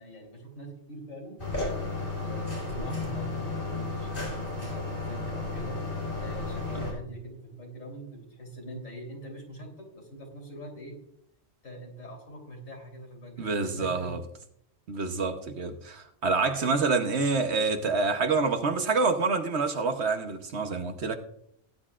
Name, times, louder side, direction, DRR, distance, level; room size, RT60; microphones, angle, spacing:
voice 1, 0.0-1.4 1.9-5.8 6.2-11.0 11.6-14.2 16.5-16.6, right 1 dB, 75° left, 3.9 m, -43 dB
sound 1, 1.4-6.9, left 3 dB, 40° left, 5.2 m, -33 dB
voice 2, 13.4-14.2 14.9-21.2, right 4 dB, 55° right, 1.2 m, -27 dB
17.5 x 10.5 x 2.5 m
omnidirectional pair, 1.4 m